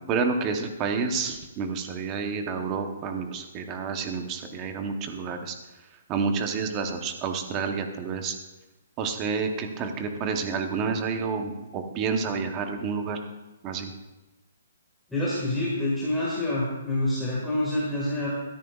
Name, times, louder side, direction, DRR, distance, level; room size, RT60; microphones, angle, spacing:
voice 1, 0.1-5.5 6.1-8.3 9.0-13.2 13.6-13.9, right 5 dB, 15° right, 6 dB, 0.8 m, -29 dB
voice 2, 15.1-18.3, left 1 dB, ahead, -9 dB, 1.7 m, -27 dB
16.0 x 13.0 x 2.4 m, 1.1 s
hypercardioid pair, 180°, 0 cm